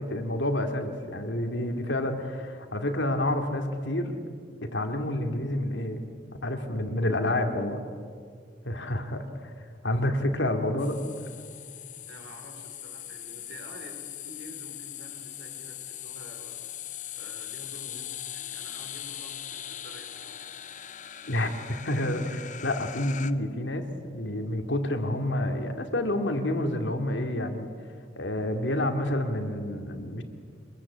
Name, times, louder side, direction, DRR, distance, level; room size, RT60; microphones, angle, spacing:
voice 1, 0.0-4.2 4.6-6.0 6.4-7.8 8.6-9.5 9.8-11.0 21.2-27.7 28.2-30.2, left 1 dB, 70° left, 5 dB, 2.5 m, -29 dB
sound 1, 10.8-23.3, left 11 dB, 40° left, 0.8 m, -40 dB
voice 2, 12.1-16.5 17.1-20.5, right 1 dB, 65° right, 3 dB, 5.0 m, -48 dB
25.5 x 21.5 x 8.7 m, 2.2 s
head